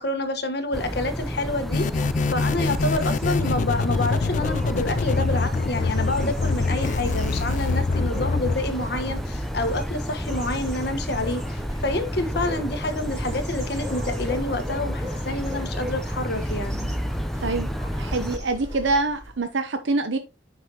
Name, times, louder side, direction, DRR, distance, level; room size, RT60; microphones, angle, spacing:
voice 1, 0.0-16.9, left 2 dB, 55° left, 1.3 m, -28 dB
Birds Chirping, 0.7-18.4, equal, ahead, 0.6 m, -31 dB
sound 1, 1.7-8.5, left 4 dB, 40° left, 0.3 m, -25 dB
sound 2, 2.1-19.4, left 1 dB, 15° right, 3.2 m, -38 dB
voice 2, 18.0-20.2, right 3 dB, 70° right, 0.8 m, -25 dB
9.9 x 5.6 x 2.9 m
head